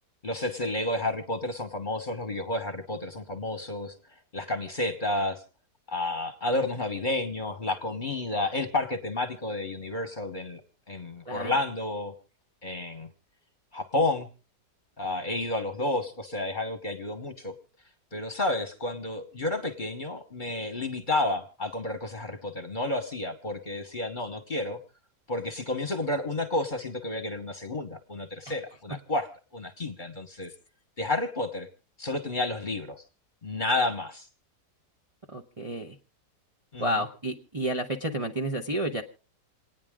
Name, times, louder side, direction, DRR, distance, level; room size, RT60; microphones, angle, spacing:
voice 1, 0.2-3.9 4.3-5.4 5.9-10.6 10.9-12.1 12.6-13.1 13.7-14.3 15.0-17.5 18.1-24.8 25.3-30.5 31.0-31.7 32.0-33.0 33.4-34.3 36.7-37.0, left 2 dB, 30° left, 5 dB, 1.3 m, -31 dB
voice 2, 35.3-36.0 36.8-39.0, right 1 dB, 25° right, 0 dB, 0.9 m, -30 dB
28.0 x 9.6 x 3.7 m, 0.36 s
omnidirectional pair, 1.9 m